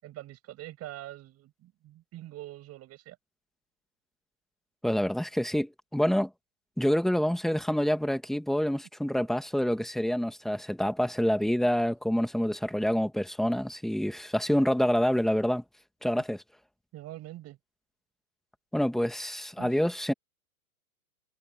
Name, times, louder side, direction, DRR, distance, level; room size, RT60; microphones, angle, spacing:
voice 1, 0.0-3.2 16.9-17.6 19.6-19.8, right 15 dB, 35° right, 7.4 m, -44 dB
voice 2, 4.8-6.3 6.8-15.6 16.0-16.4 18.7-20.1, equal, ahead, 1.8 m, -27 dB
hypercardioid pair, 120°, 45 cm